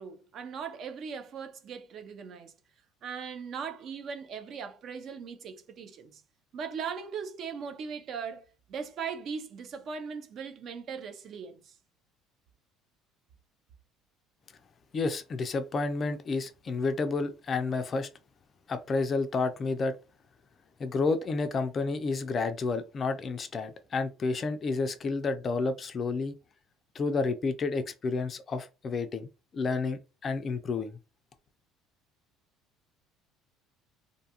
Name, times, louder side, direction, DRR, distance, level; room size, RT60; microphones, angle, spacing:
voice 1, 0.0-2.5 3.0-6.2 6.5-11.8, right 6 dB, 45° right, 0.4 m, -39 dB
voice 2, 14.9-18.1 18.7-19.9 20.8-26.3 26.9-31.0, left 4 dB, 30° left, 0.3 m, -30 dB
2.5 x 2.3 x 2.7 m
cardioid pair, 140°, 0 cm